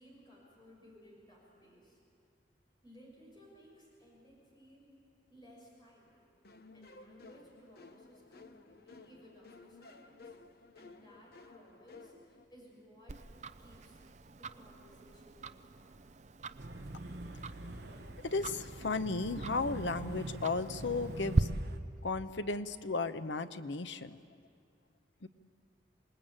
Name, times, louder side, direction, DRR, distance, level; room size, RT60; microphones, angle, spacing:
voice 1, 0.0-2.0 2.8-4.9 5.3-6.3 6.7-13.2 13.6-14.0 14.4-16.0, equal, 25° left, -3 dB, 6.4 m, -59 dB
sound 1, 6.4-12.4, left 3 dB, 55° left, 1.0 m, -56 dB
Tick-tock, 13.1-21.4, right 2 dB, 40° right, 0.6 m, -40 dB
sound 2, 16.6-21.8, right 1 dB, 60° right, 1.2 m, -44 dB
voice 2, 18.2-21.5 22.0-24.2 25.2-25.3, left 3 dB, 90° left, 11 dB, 0.9 m, -35 dB
27.0 x 20.0 x 8.9 m, 2.3 s
head